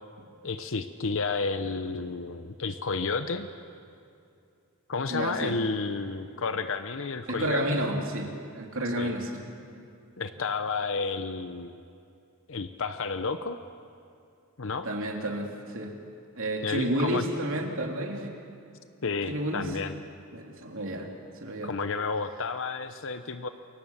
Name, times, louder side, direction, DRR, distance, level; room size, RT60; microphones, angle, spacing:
voice 1, 0.4-3.5 4.9-7.9 9.0-9.2 10.2-11.7 12.5-13.6 14.6-14.9 16.6-17.3 19.0-19.9 21.6-23.5, left 4 dB, 60° left, 9 dB, 0.9 m, -31 dB
voice 2, 5.1-5.6 5.9-6.0 7.3-8.3 8.5-9.4 14.8-15.9 16.4-18.4 19.3-19.7 20.3-21.1 21.4-21.7, right 1 dB, 60° right, 1 dB, 3.3 m, -30 dB
29.5 x 23.5 x 7.3 m, 2.5 s
head